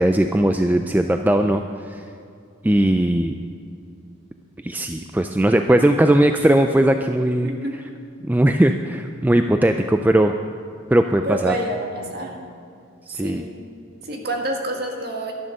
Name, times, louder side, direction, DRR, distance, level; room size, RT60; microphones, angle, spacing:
voice 1, 0.0-2.1 2.6-3.3 4.6-7.5 8.2-10.3 10.9-11.6 13.1-13.4, right 1 dB, 10° right, 6 dB, 0.3 m, -18 dB
voice 2, 7.4-7.8 11.3-12.4 13.2-13.5 14.0-15.3, right 1 dB, 50° right, 2 dB, 1.8 m, -28 dB
12.0 x 11.0 x 6.5 m, 2.5 s
head